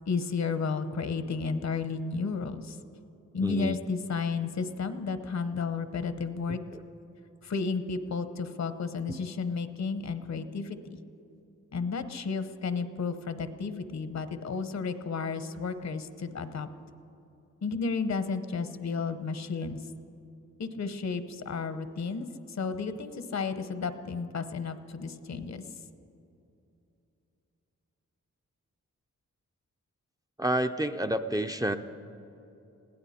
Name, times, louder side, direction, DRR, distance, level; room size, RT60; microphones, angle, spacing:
voice 1, 0.1-2.8 3.3-6.6 7.4-11.0 11.7-16.7 17.6-19.8 20.6-25.6, left 5 dB, 65° left, 11 dB, 0.9 m, -32 dB
voice 2, 3.4-3.8 9.1-9.2 30.4-31.8, right 1 dB, 15° right, 9 dB, 0.5 m, -29 dB
21.0 x 16.5 x 4.2 m, 2.8 s
wide cardioid pair, 120°, 29 cm